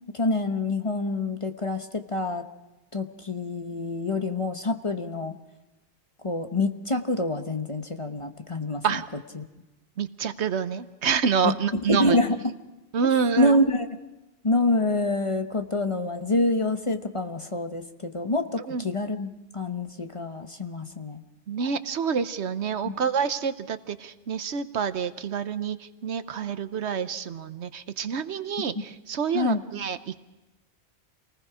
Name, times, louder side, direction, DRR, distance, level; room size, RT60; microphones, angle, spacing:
voice 1, 0.1-2.5 2.9-5.4 6.2-8.8 9.3-9.4 11.4-12.4 13.4-13.9 14.4-21.2 22.8-22.9 29.3-29.6, left 2 dB, 30° left, 6 dB, 1.0 m, -26 dB
voice 2, 10.0-12.2 12.9-13.6 18.7-18.9 21.5-30.2, right 6 dB, 70° right, 12 dB, 1.1 m, -27 dB
28.5 x 19.5 x 4.9 m, 1.1 s
omnidirectional pair, 1.2 m